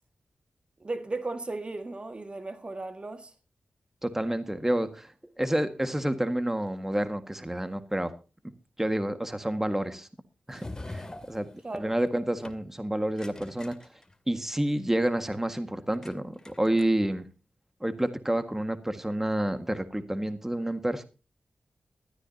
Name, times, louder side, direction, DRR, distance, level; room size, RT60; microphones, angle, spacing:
voice 1, 0.8-3.3 11.6-12.0, right 2 dB, 40° right, 1.8 m, -36 dB
voice 2, 4.0-8.1 8.8-10.1 10.5-11.5 11.7-13.8 14.3-17.3 17.8-21.0, right 1 dB, 15° right, 1.7 m, -29 dB
sound 1, 10.5-12.1 12.4-12.7 13.2-14.4 15.9-16.1 16.4-17.1, left 2 dB, 25° left, 2.2 m, -43 dB
19.5 x 13.5 x 2.8 m
cardioid pair, 55°, 3 cm